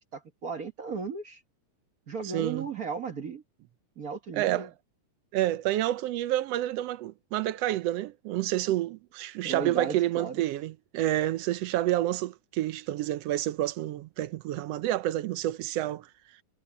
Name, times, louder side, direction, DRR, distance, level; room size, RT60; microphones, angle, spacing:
voice 1, 0.1-1.4 2.1-3.4 4.0-4.7 9.4-10.4, right 5 dB, 50° right, 1.0 m, -35 dB
voice 2, 2.3-2.7 4.3-4.7 5.3-16.1, right 14 dB, 80° right, 1.4 m, -29 dB
omnidirectional pair, 3.6 m